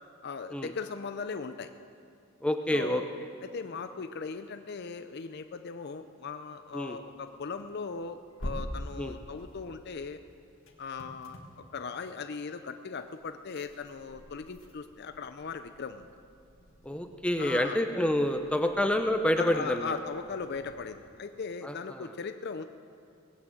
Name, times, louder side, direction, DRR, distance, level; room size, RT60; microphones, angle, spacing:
voice 1, 0.2-1.7 2.7-3.1 3.4-10.2 10.8-16.1 17.4-17.8 19.4-22.7, left 5 dB, 55° left, 9 dB, 0.5 m, -38 dB
voice 2, 2.4-3.0 6.7-7.0 9.0-9.2 16.8-19.9 21.6-22.1, left 1 dB, 5° left, 6 dB, 0.6 m, -28 dB
sound 1, 7.0-20.9, equal, 70° left, 2.0 m, -47 dB
20.0 x 8.6 x 7.8 m, 2.6 s
head